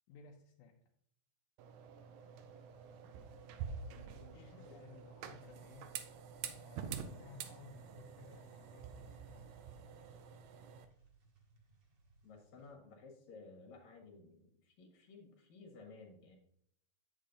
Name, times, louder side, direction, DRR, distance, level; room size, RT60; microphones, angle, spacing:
voice 1, 0.1-0.8 4.3-5.9 6.4-9.6, left 6 dB, 85° left, 0 dB, 2.2 m, -58 dB
sound 1, 1.6-10.9, right 7 dB, 75° right, 1.8 m, -48 dB
sound 2, 2.2-12.7, right 3 dB, 50° right, 2.2 m, -67 dB
voice 2, 3.9-4.8 6.5-6.6 12.2-16.4, left 4 dB, 70° left, 1 dB, 2.7 m, -56 dB
8.4 x 8.3 x 2.6 m, 0.67 s
omnidirectional pair, 3.4 m